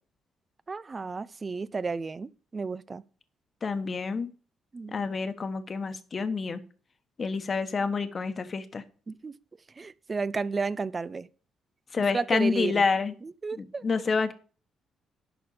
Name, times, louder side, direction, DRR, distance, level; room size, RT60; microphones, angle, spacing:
voice 1, 0.7-3.0 4.7-5.0 9.1-9.3 9.8-11.3 12.1-12.8 13.2-13.8, right 4 dB, 30° right, 0.5 m, -32 dB
voice 2, 3.6-4.3 4.9-6.6 7.2-8.8 11.9-13.1 13.6-14.3, left 4 dB, 40° left, 1.2 m, -28 dB
11.0 x 4.3 x 6.9 m
cardioid pair, 90°, 0 cm